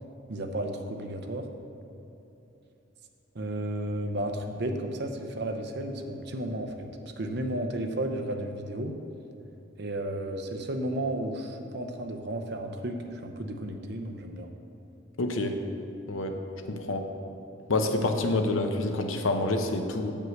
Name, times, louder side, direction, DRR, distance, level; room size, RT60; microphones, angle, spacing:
voice 1, 0.3-1.5 3.3-6.9 7.2-9.0 9.8-14.5, right 1 dB, 55° right, 5 dB, 0.7 m, -33 dB
voice 2, 15.2-15.6 16.1-16.4 16.7-17.0 17.7-20.1, left 2 dB, 90° left, 5 dB, 0.8 m, -27 dB
7.7 x 5.4 x 6.4 m, 2.9 s
head